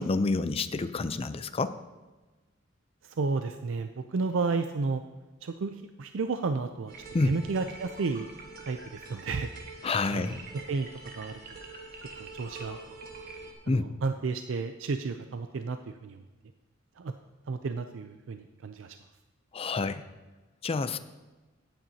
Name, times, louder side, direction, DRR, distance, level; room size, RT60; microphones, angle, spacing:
voice 1, 0.0-1.8 7.1-7.4 9.8-10.4 13.7-13.9 19.5-20.0 20.6-21.0, left 3 dB, 30° left, 12 dB, 0.4 m, -28 dB
voice 2, 3.2-5.0 5.4-6.9 7.2-8.3 8.6-9.5 10.1-10.4 10.7-10.9 11.2-11.3 12.2-12.8 13.7-16.2 17.0-17.1 17.5-18.9, right 4 dB, 70° right, 8 dB, 0.4 m, -32 dB
sound 1, 6.9-13.5, right 3 dB, 50° right, 1.4 m, -45 dB
16.0 x 8.9 x 2.8 m, 1.2 s
head